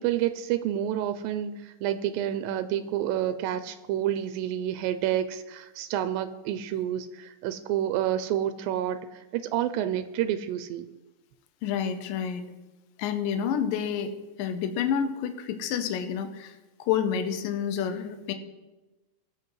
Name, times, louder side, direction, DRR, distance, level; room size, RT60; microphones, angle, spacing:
voice 1, 0.0-10.9, right 11 dB, 90° right, 11 dB, 2.4 m, -29 dB
voice 2, 11.6-12.5 13.0-14.1 14.4-18.3, left 8 dB, 80° left, 7 dB, 2.5 m, -29 dB
21.0 x 8.1 x 3.2 m, 1.1 s
omnidirectional pair, 4.0 m